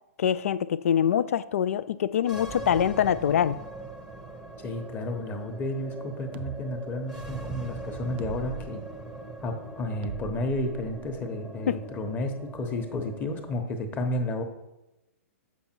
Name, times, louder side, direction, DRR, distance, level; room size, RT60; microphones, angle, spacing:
voice 1, 0.2-3.6 11.7-11.8, left 9 dB, 65° left, 0.4 m, -24 dB
sound 1, 2.2-13.7, right 3 dB, 5° right, 0.8 m, -41 dB
voice 2, 4.6-8.8 9.4-14.4, left 1 dB, 20° left, 1.0 m, -32 dB
sound 2, 6.3-6.6 8.2-8.7 10.0-11.2, right 8 dB, 45° right, 0.5 m, -39 dB
7.2 x 5.5 x 4.5 m
hypercardioid pair, 125°, 8 cm